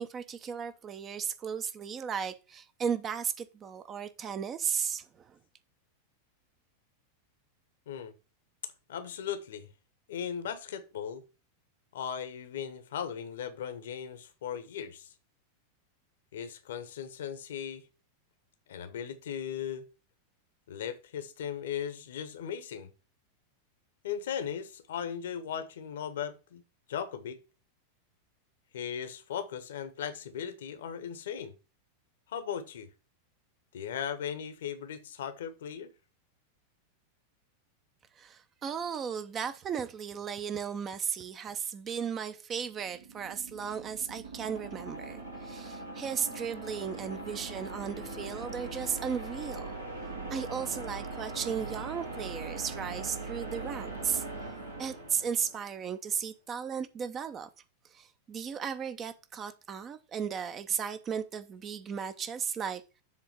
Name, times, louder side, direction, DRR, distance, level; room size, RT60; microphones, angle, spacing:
voice 1, 0.0-5.4 38.2-49.7 50.3-54.2 54.8-57.5 57.9-62.8, right 7 dB, 25° right, 0.7 m, -35 dB
voice 2, 8.9-9.7 10.1-11.2 11.9-15.1 16.3-17.8 18.7-19.8 20.7-22.9 24.0-26.6 26.9-27.4 28.7-31.5 32.3-32.9 33.7-35.9, left 8 dB, 60° left, 1.0 m, -37 dB
sound 1, 42.6-55.8, right 3 dB, 80° right, 2.1 m, -41 dB
7.5 x 3.6 x 6.1 m
figure-of-eight pair, 90°, 0 cm